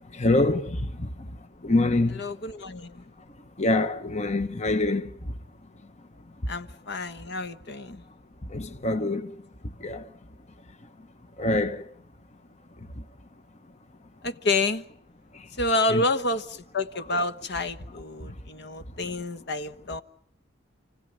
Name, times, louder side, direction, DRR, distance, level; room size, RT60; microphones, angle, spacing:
voice 1, 0.0-2.4 3.6-5.4 6.4-6.5 8.4-9.4 9.6-10.1 11.4-11.9 12.8-13.1 15.3-15.5 15.9-16.0 18.2-18.4, left 2 dB, 35° left, 1.0 m, -26 dB
voice 2, 2.1-3.0 6.5-8.0 14.2-14.8 15.6-20.0, left 2 dB, 60° left, 1.3 m, -29 dB
29.5 x 16.0 x 9.4 m
head